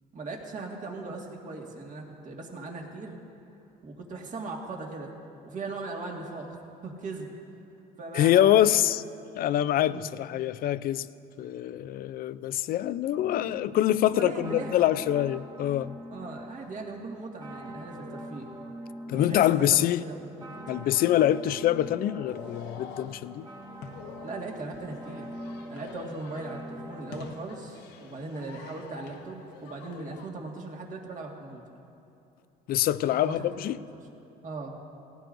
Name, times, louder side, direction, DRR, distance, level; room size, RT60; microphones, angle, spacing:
voice 1, 0.1-3.1 3.8-5.1 5.4-6.6 6.8-7.4 8.0-8.9 9.9-10.1 14.1-15.0 16.1-18.5 19.1-20.5 24.2-25.3 25.7-31.6 33.1-34.0 34.4-34.8, right 3 dB, 45° right, 1.9 m, -39 dB
voice 2, 8.1-9.0 9.4-11.1 11.4-16.0 19.1-20.0 20.7-23.5 32.7-33.8, left 12 dB, 60° left, 0.4 m, -25 dB
sound 1, 13.1-27.2, right 1 dB, 25° right, 1.5 m, -44 dB
sound 2, 22.2-30.3, left 6 dB, 80° left, 1.0 m, -46 dB
19.0 x 15.5 x 2.6 m
cardioid pair, 110°, 17 cm